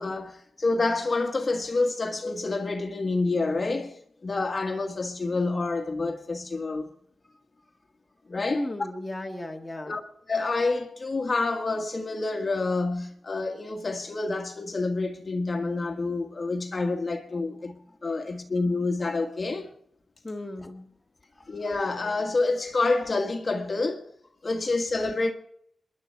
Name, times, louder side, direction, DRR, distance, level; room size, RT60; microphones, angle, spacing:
voice 1, 0.0-6.9 8.3-8.6 9.8-10.0 10.3-19.7 21.5-24.0 24.4-25.3, left 3 dB, 30° left, 1.6 m, -28 dB
voice 2, 8.4-10.0 20.2-20.9 21.3-21.5, left 1 dB, 10° left, 1.6 m, -35 dB
28.0 x 11.0 x 4.6 m
wide cardioid pair, 170°, 0 cm